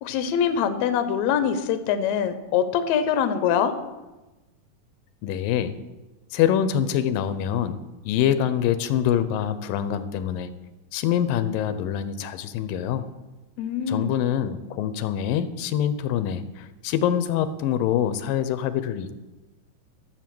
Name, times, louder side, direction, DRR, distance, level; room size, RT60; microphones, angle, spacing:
voice 1, 0.0-3.7 13.6-14.1, left 8 dB, 70° left, 10 dB, 1.9 m, -24 dB
voice 2, 5.2-5.8 6.3-10.5 10.9-13.1 13.9-19.2, left 10 dB, 90° left, 12 dB, 2.5 m, -25 dB
13.0 x 6.7 x 7.6 m, 1.1 s
omnidirectional pair, 3.9 m